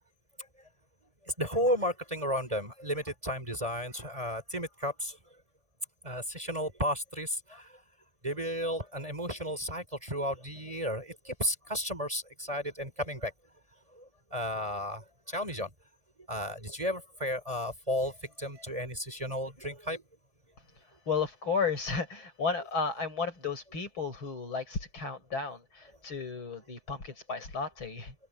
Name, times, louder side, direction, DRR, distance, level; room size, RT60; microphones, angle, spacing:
voice 1, 1.3-5.2 6.0-7.7 8.2-13.3 13.9-15.7 16.3-20.0, equal, 15° right, 3.9 m, -33 dB
voice 2, 21.1-28.1, left 5 dB, 70° left, 6.1 m, -33 dB
open air
omnidirectional pair, 2.3 m